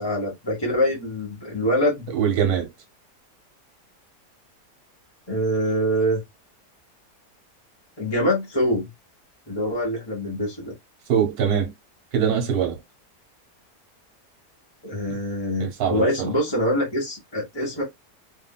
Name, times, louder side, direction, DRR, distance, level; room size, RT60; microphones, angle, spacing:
voice 1, 0.0-2.1 5.3-6.2 8.0-8.9 9.5-10.7 14.8-17.8, equal, 20° left, 0.8 m, -24 dB
voice 2, 2.1-2.7 11.1-11.7 12.1-12.8 15.6-16.3, right 8 dB, 65° right, 1.4 m, -22 dB
2.9 x 2.5 x 2.2 m
omnidirectional pair, 1.8 m